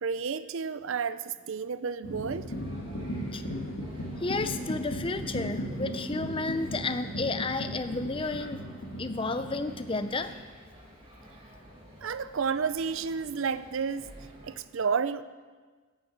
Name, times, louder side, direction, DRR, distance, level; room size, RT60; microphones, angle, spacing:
voice 1, 0.0-2.4 12.0-14.0 14.4-15.2, right 5 dB, 65° right, 14 dB, 0.5 m, -31 dB
sound 1, 2.0-10.4, equal, 60° left, 1.7 m, -37 dB
sound 2, 2.5-14.6, equal, 25° right, 2.2 m, -52 dB
voice 2, 4.2-8.6 9.0-10.3, left 3 dB, 25° left, 10 dB, 0.5 m, -31 dB
11.0 x 8.0 x 7.3 m, 1.4 s
head